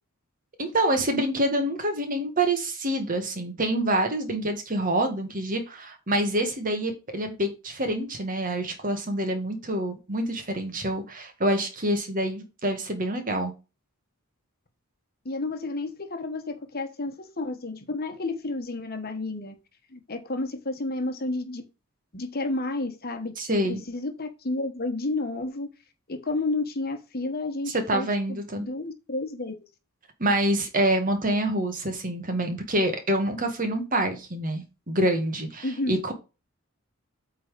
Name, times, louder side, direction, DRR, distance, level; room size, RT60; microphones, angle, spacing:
voice 1, 0.6-13.5 23.4-23.8 27.7-28.7 30.2-36.1, right 1 dB, 40° right, 6 dB, 1.8 m, -26 dB
voice 2, 15.2-19.5 19.9-21.6 22.1-25.7 26.1-29.6 35.6-36.0, left 2 dB, 45° left, 7 dB, 1.3 m, -31 dB
8.4 x 3.9 x 5.0 m, 0.29 s
head